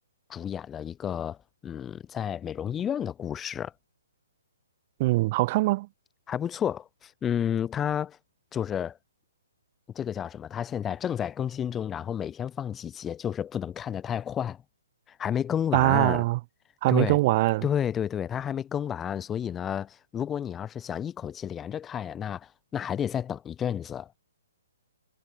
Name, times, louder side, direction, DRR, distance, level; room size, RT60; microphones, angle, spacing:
voice 1, 0.3-1.4 1.6-3.7 6.3-8.2 8.5-9.0 9.9-14.6 15.1-16.2 16.9-17.2 17.6-24.1, left 9 dB, 15° left, 6.5 m, -31 dB
voice 2, 5.0-5.9 15.7-16.4 16.8-17.6, right 20 dB, 35° right, 4.7 m, -22 dB
figure-of-eight pair, 130°, 0 cm